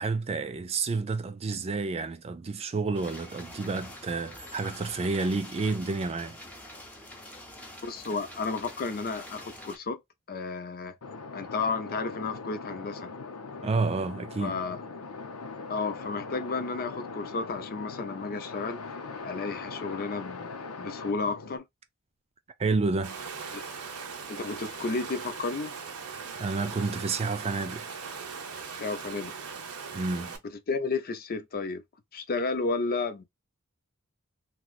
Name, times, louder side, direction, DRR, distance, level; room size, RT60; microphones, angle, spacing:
voice 1, 0.0-6.4 13.6-14.6 22.6-23.2 26.4-27.8 29.9-30.3, right 3 dB, 30° right, 0.3 m, -30 dB
sound 1, 2.9-9.8, left 1 dB, 5° left, 0.8 m, -45 dB
voice 2, 7.8-10.0 10.3-10.9 11.3-13.1 14.4-14.8 15.7-18.8 19.2-20.5 20.8-21.7 23.5-23.6 24.3-25.7 28.7-29.3 30.5-31.8 32.1-33.2, left 4 dB, 45° left, 0.5 m, -32 dB
sound 2, 11.0-21.6, left 4 dB, 85° left, 0.8 m, -41 dB
Water, 23.0-30.4, right 5 dB, 85° right, 0.9 m, -40 dB
3.0 x 2.9 x 2.3 m
head